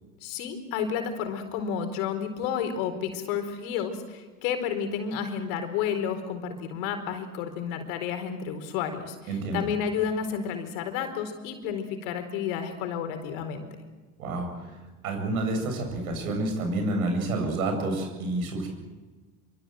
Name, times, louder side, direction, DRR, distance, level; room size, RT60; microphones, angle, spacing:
voice 1, 0.2-13.6, left 7 dB, 75° left, 8 dB, 4.3 m, -31 dB
voice 2, 9.3-9.6 14.2-14.5 15.0-18.7, right 2 dB, 80° right, 4 dB, 7.9 m, -28 dB
26.5 x 24.5 x 7.9 m, 1.3 s
hypercardioid pair, 65°, 42 cm